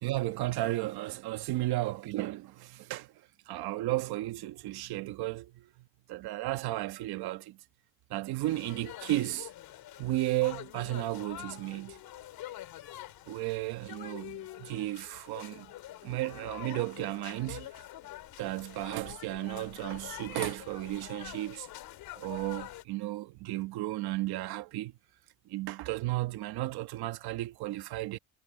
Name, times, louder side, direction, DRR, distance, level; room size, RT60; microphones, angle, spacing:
voice 1, 0.0-3.1 3.5-7.6 8.1-9.5 10.0-12.0 13.3-15.7 16.0-17.8 18.4-21.7 22.2-24.9 25.5-28.2, right 17 dB, 70° right, 1.3 m, -34 dB
sound 1, 8.4-22.8, left 14 dB, 65° left, 2.6 m, -46 dB
cardioid pair, 145°, 39 cm